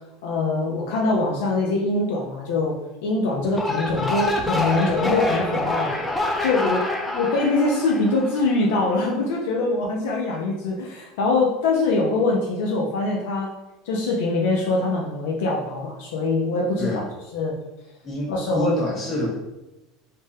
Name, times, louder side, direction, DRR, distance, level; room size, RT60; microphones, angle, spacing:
voice 1, 0.2-2.7 3.0-5.9 6.4-13.5 13.8-17.0 17.3-17.5 18.3-18.8, left 3 dB, 80° left, -1 dB, 0.4 m, -23 dB
sound 1, 3.4-8.8, left 2 dB, 15° left, 0.5 m, -26 dB
voice 2, 18.0-19.3, equal, 35° left, -3 dB, 1.2 m, -27 dB
3.3 x 2.1 x 2.7 m, 0.97 s
supercardioid pair, 100°, 0 cm